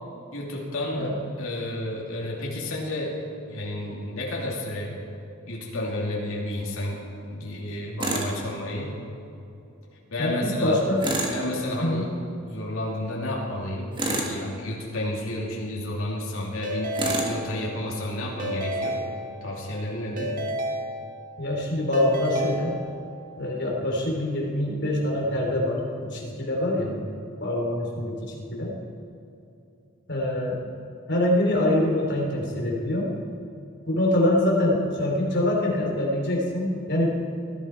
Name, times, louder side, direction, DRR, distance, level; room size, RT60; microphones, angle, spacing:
voice 1, 0.3-1.1 1.4-3.2 3.5-5.0 5.5-7.0 7.3-8.9 10.1-10.8 11.3-12.1 12.4-17.0 17.3-19.0 19.4-20.3, left 1 dB, 70° left, -3 dB, 2.9 m, -31 dB
Tools, 8.0-8.3 11.0-11.4 14.0-14.4 17.0-17.4, right 2 dB, 25° right, 1.8 m, -27 dB
voice 2, 10.2-11.1 11.8-12.0 21.4-22.7 23.3-27.0 27.4-28.7 30.1-30.6 31.1-33.1 33.8-37.2, left 1 dB, 55° left, -1 dB, 3.4 m, -25 dB
Keyboard (musical) / Ringtone, 16.6-18.0 18.4-19.7 20.2-21.5 21.9-23.3, equal, 40° right, 1.3 m, -31 dB
19.5 x 12.5 x 4.6 m, 2.8 s
head